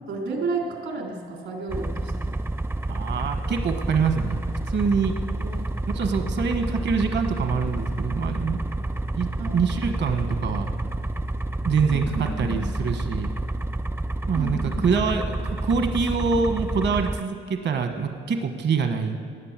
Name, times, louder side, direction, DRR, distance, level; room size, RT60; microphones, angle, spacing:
voice 1, 0.1-2.3 5.4-5.6 9.4-9.6 11.9-12.6 14.4-14.9, right 3 dB, 80° right, 0 dB, 3.4 m, -32 dB
sound 1, 1.7-17.2, right 1 dB, 10° right, 0.4 m, -29 dB
voice 2, 2.9-4.4 4.7-5.2 5.9-8.6 9.1-10.7 11.6-13.3 14.3-19.2, right 5 dB, 60° right, 6 dB, 1.3 m, -25 dB
18.5 x 8.9 x 7.5 m, 2.3 s
cardioid pair, 90°, 20 cm